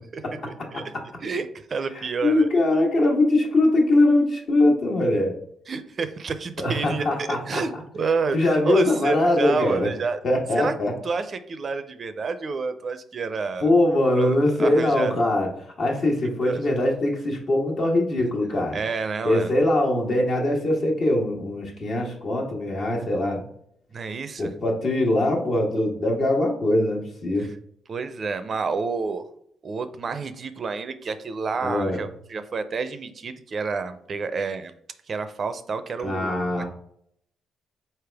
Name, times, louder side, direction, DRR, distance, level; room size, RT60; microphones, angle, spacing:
voice 1, 1.2-2.5 5.7-10.2 10.5-10.7 11.0-13.7 14.2-15.2 16.4-16.6 18.7-19.5 23.9-24.5 27.4-27.5 27.9-29.3 29.6-34.7 35.1-36.4, right 4 dB, 45° right, 10 dB, 0.4 m, -29 dB
voice 2, 1.9-5.3 6.6-7.6 8.3-9.9 10.2-10.9 13.6-15.5 15.8-18.8 19.2-23.4 24.4-27.5 31.6-32.0 36.0-36.6, left 1 dB, 55° left, 0 dB, 1.4 m, -22 dB
4.3 x 3.4 x 3.4 m, 0.71 s
cardioid pair, 90°, 0 cm